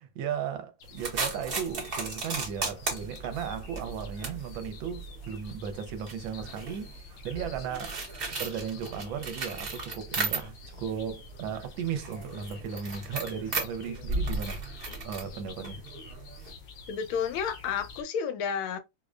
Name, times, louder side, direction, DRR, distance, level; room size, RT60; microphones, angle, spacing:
voice 1, 0.0-15.8, right 7 dB, 75° right, 1.3 m, -36 dB
sound 1, 0.8-18.0, left 3 dB, 70° left, 1.2 m, -49 dB
sound 2, 1.0-10.8 11.1-16.5, right 3 dB, 45° right, 0.7 m, -36 dB
voice 2, 16.9-18.8, left 7 dB, 90° left, 1.4 m, -31 dB
4.7 x 2.1 x 2.4 m
omnidirectional pair, 2.2 m